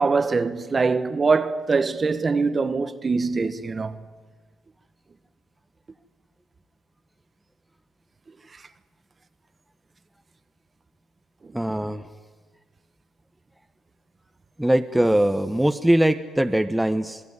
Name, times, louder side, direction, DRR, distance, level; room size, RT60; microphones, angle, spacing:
voice 1, 0.0-3.9, right 4 dB, 35° right, 1.4 m, -23 dB
voice 2, 11.5-12.1 14.6-17.2, right 1 dB, 5° right, 1.1 m, -21 dB
27.5 x 18.0 x 9.7 m
cardioid pair, 90°, 0 cm